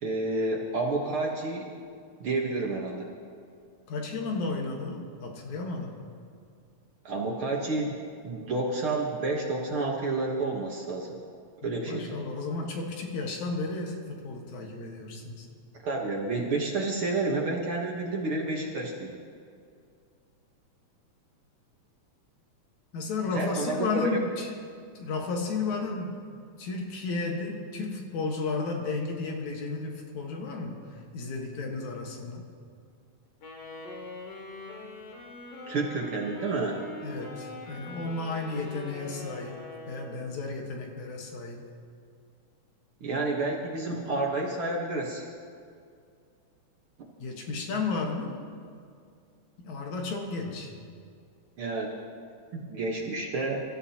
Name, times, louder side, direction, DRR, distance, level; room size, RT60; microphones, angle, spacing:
voice 1, 0.0-1.7 2.2-3.1 7.1-11.2 11.6-12.2 15.8-19.2 23.4-24.2 35.7-36.8 43.0-45.3 51.6-51.9 52.5-53.6, right 2 dB, 55° right, -1 dB, 1.8 m, -30 dB
voice 2, 3.9-6.0 11.6-15.5 22.9-24.5 24.9-26.2 26.6-32.5 37.0-41.7 47.2-48.4 49.6-50.7, left 3 dB, 70° left, 1 dB, 2.8 m, -33 dB
Wind instrument woodwind instrument, 33.4-40.4, left 2 dB, 85° left, 3.4 m, -43 dB
25.0 x 13.5 x 2.9 m, 2.3 s
omnidirectional pair, 3.5 m